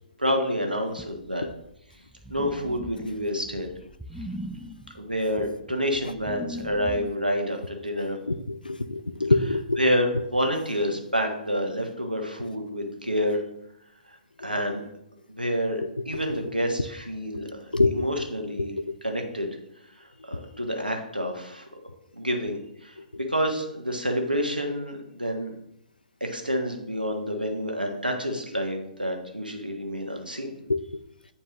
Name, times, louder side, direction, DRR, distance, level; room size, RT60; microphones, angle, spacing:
voice 1, 0.2-1.5 2.3-3.7 4.9-8.2 9.8-13.4 14.4-14.8 15.3-18.7 19.0-19.5 20.3-21.6 22.1-25.5 26.2-30.5, equal, 85° right, 1.2 m, -28 dB
sound 1, 1.0-7.2, equal, 5° right, 0.3 m, -40 dB
voice 2, 8.3-9.8 16.1-16.4 17.7-18.2 18.6-18.7 23.0-23.1 30.7-30.8, left 2 dB, 80° left, 0.4 m, -25 dB
8.8 x 4.3 x 3.0 m
figure-of-eight pair, 120°, 5 cm